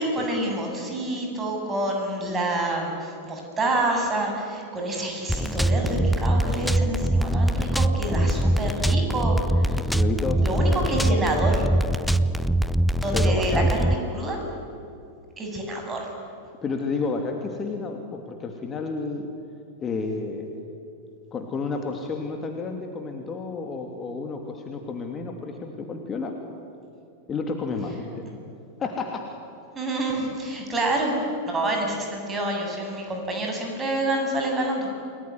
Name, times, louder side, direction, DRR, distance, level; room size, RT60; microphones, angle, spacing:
voice 1, 0.0-9.7 10.4-11.7 13.0-14.4 15.4-16.1 29.7-34.9, right 1 dB, 20° right, 2 dB, 7.8 m, -27 dB
sound 1, 5.3-14.0, right 1 dB, ahead, 0.8 m, -23 dB
voice 2, 9.8-10.8 13.1-13.7 16.6-19.3 19.8-20.5 21.3-26.3 27.3-28.2 28.8-29.2, left 4 dB, 25° left, 3 dB, 2.8 m, -31 dB
30.0 x 20.0 x 9.7 m, 2.6 s
figure-of-eight pair, 90°, 0 cm